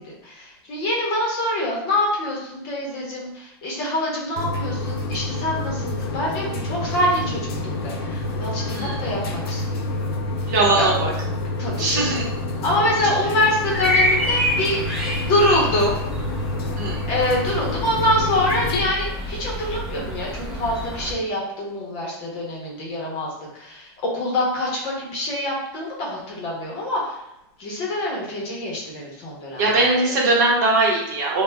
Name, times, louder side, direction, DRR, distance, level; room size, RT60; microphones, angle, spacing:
voice 1, 0.0-10.9 11.6-12.2 12.6-14.8 15.2-16.0 17.1-27.2 27.6-29.9, left 1 dB, 30° left, -3 dB, 0.8 m, -25 dB
sound 1, 4.4-18.8, left 2 dB, 90° left, 0.6 m, -28 dB
voice 2, 10.5-11.1 11.8-12.2 13.0-13.1 16.8-17.0 29.6-31.4, right 2 dB, 45° right, -2 dB, 0.9 m, -20 dB
sound 2, 13.7-21.1, equal, 5° right, 0.5 m, -27 dB
3.3 x 2.1 x 3.3 m, 0.88 s
supercardioid pair, 175°, 13 cm